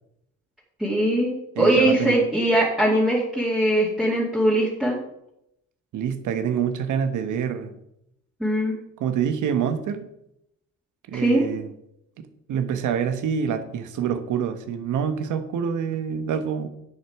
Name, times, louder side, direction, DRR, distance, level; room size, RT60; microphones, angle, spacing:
voice 1, 0.8-5.0 8.4-8.7 11.1-11.5, right 1 dB, ahead, -6 dB, 2.3 m, -21 dB
voice 2, 1.6-2.2 5.9-7.7 9.0-10.0 11.1-11.7 12.2-16.7, right 7 dB, 80° right, 9 dB, 1.2 m, -26 dB
10.0 x 7.0 x 4.7 m, 0.79 s
cardioid pair, 90°, 30 cm